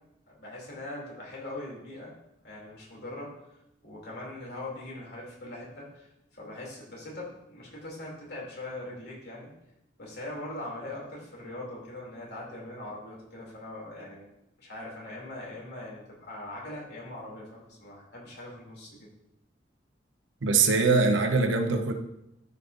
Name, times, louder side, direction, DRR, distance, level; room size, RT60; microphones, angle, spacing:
voice 1, 0.3-2.1 2.4-3.3 3.8-6.1 6.4-9.5 10.0-14.3 14.6-19.1, left 1 dB, 55° left, -3 dB, 2.8 m, -41 dB
voice 2, 20.4-21.9, right 4 dB, 75° right, 5 dB, 0.9 m, -22 dB
13.0 x 5.5 x 2.6 m, 0.85 s
head